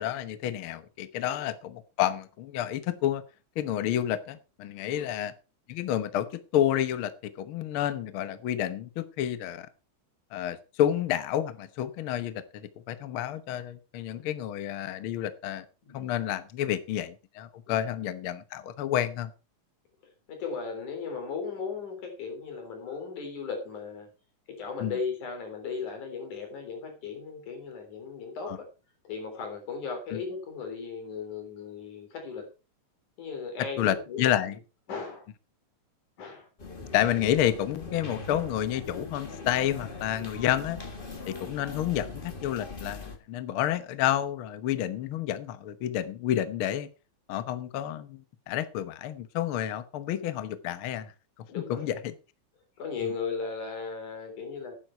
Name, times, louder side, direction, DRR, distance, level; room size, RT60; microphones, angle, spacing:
voice 1, 0.0-3.2 3.6-5.3 5.7-7.1 7.4-9.7 10.3-15.6 15.9-19.3 24.8-24.9 28.5-28.6 30.1-30.2 33.8-34.6 36.9-40.8 41.3-46.9 47.3-51.1 51.6-52.1 53.0-53.1, left 11 dB, 60° left, 13 dB, 1.4 m, -30 dB
voice 2, 20.0-24.1 24.5-28.6 29.0-32.5 33.2-34.5 34.9-35.3 36.2-36.5 40.2-40.4 51.5-51.8 52.8-54.8, left 5 dB, 85° left, 4 dB, 5.0 m, -37 dB
sound 1, 36.6-43.2, left 3 dB, 30° left, 1.0 m, -41 dB
12.0 x 9.6 x 4.5 m, 0.32 s
omnidirectional pair, 3.4 m